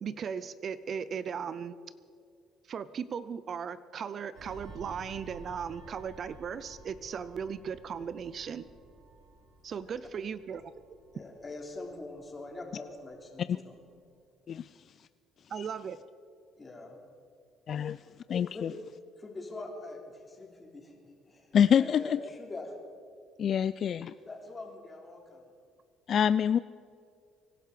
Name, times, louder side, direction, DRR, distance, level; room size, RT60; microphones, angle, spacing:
voice 1, 0.0-1.8 2.7-8.7 9.6-10.7 15.5-16.0, right 7 dB, 50° right, 16 dB, 0.6 m, -37 dB
sound 1, 4.3-13.4 13.7-14.0, right 2 dB, 75° right, 3.8 m, -53 dB
voice 2, 11.1-13.8 15.8-15.9 16.6-17.0 17.8-17.9 18.5-18.8 19.2-22.7 24.3-25.4, left 2 dB, 25° left, 1 dB, 3.4 m, -43 dB
voice 3, 17.7-18.0 18.3-18.7 21.5-22.2 23.4-24.1 26.1-26.6, left 8 dB, 50° left, 15 dB, 0.3 m, -26 dB
24.5 x 11.5 x 5.0 m, 2.3 s
cardioid pair, 90°, 0 cm